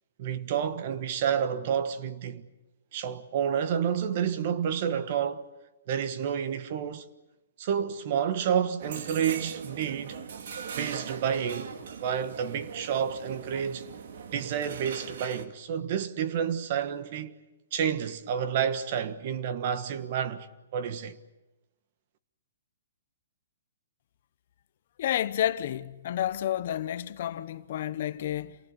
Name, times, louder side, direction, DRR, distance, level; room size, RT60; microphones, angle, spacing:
voice 1, 0.2-2.5 2.9-5.5 5.9-7.1 7.6-10.2 10.8-11.7 12.0-13.9 14.3-17.4 17.7-20.5 20.7-21.2, right 8 dB, 40° right, 1.4 m, -29 dB
sound 1, 8.8-15.5, right 6 dB, 55° right, 2.2 m, -40 dB
voice 2, 25.0-28.6, left 11 dB, 45° left, 0.9 m, -30 dB
28.0 x 19.0 x 9.8 m
hypercardioid pair, 170°, 0 cm